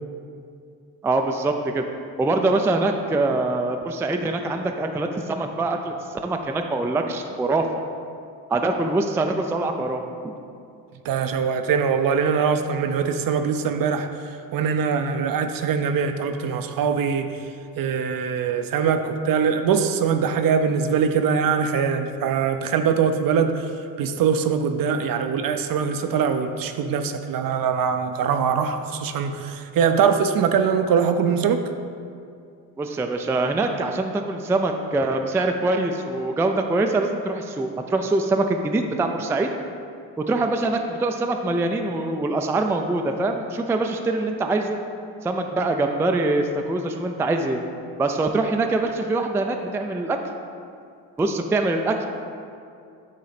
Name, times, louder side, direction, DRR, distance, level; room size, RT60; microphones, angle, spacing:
voice 1, 1.0-1.8 2.2-7.7 8.5-10.3 32.8-39.5 40.2-44.8 45.2-47.6 48.0-50.2 51.2-52.1, right 2 dB, 5° right, 4 dB, 0.3 m, -24 dB
voice 2, 11.0-14.1 14.5-17.3 17.8-23.7 24.0-31.6, right 6 dB, 55° right, 8 dB, 0.6 m, -22 dB
8.4 x 3.1 x 4.1 m, 2.4 s
supercardioid pair, 60°, 42 cm